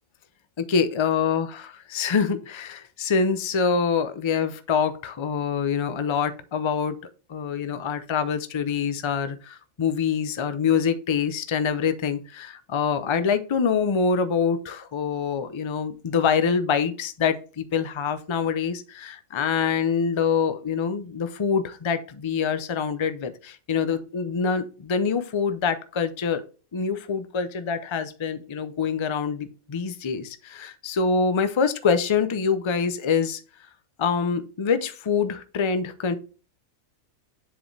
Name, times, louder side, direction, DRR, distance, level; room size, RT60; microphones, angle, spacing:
voice 1, 0.7-7.0 7.3-26.4 26.7-33.4 34.0-36.1, left 6 dB, 50° left, 11 dB, 0.3 m, -25 dB
7.5 x 5.1 x 3.2 m, 0.36 s
omnidirectional pair, 1.5 m